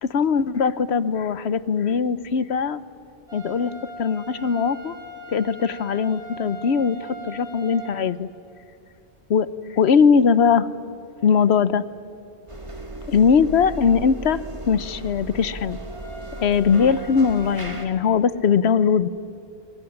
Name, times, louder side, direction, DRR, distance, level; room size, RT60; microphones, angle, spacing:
voice 1, 0.0-2.8 3.3-3.7 4.0-5.0 5.3-8.3 9.3-9.5 9.7-10.7 11.2-11.8 13.1-15.8 16.4-19.1, left 6 dB, 90° left, 16 dB, 1.1 m, -20 dB
sound 1, 3.3-7.9 15.9-17.8, right 1 dB, 80° right, 7.6 m, -40 dB
sound 2, 12.5-17.9, right 1 dB, 30° right, 2.3 m, -36 dB
23.5 x 22.5 x 10.0 m, 2.7 s
omnidirectional pair, 1.1 m